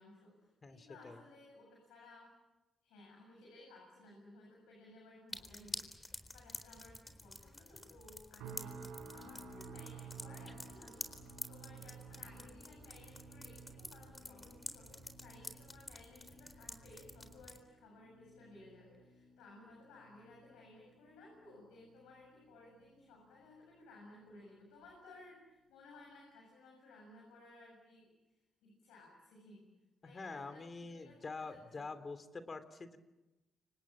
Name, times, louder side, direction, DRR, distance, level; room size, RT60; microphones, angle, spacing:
voice 1, 0.0-2.3 2.8-29.6 30.0-31.9, left 2 dB, 80° left, -1 dB, 7.7 m, -58 dB
voice 2, 0.6-1.2 30.0-33.0, left 3 dB, 40° left, 11 dB, 3.0 m, -46 dB
sound 1, 5.3-17.6, left 2 dB, 20° left, 4.1 m, -50 dB
sound 2, 8.4-23.6 23.9-24.3 24.8-25.0, right 5 dB, 80° right, 4.4 m, -55 dB
30.0 x 26.5 x 7.4 m, 1.0 s
hypercardioid pair, 40°, 0 cm